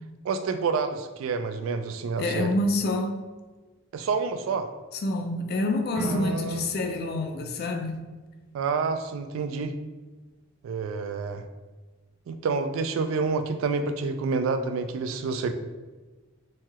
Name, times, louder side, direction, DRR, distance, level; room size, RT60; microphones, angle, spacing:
voice 1, 0.2-2.5 3.9-4.7 6.1-6.6 8.5-9.7 10.6-11.4 12.3-15.5, right 4 dB, 80° right, 0.3 m, -28 dB
voice 2, 2.2-3.2 4.9-8.0, left 2 dB, 50° left, 0.3 m, -27 dB
sound 1, 5.9-8.8, right 1 dB, 60° right, 1.1 m, -38 dB
3.1 x 2.7 x 2.3 m
head